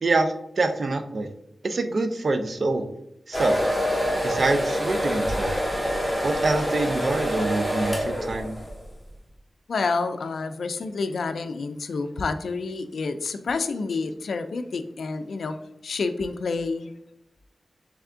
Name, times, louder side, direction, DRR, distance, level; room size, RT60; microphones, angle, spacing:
voice 1, 0.0-1.3 1.6-2.9 3.3-3.6 4.2-5.8 6.2-8.5, right 2 dB, 55° right, 8 dB, 0.5 m, -25 dB
sound 1, 3.3-8.8, equal, ahead, 1.0 m, -26 dB
voice 2, 9.7-15.6 15.8-16.9, left 4 dB, 85° left, 9 dB, 0.3 m, -29 dB
3.4 x 3.4 x 3.6 m, 0.82 s
wide cardioid pair, 95°, 0 cm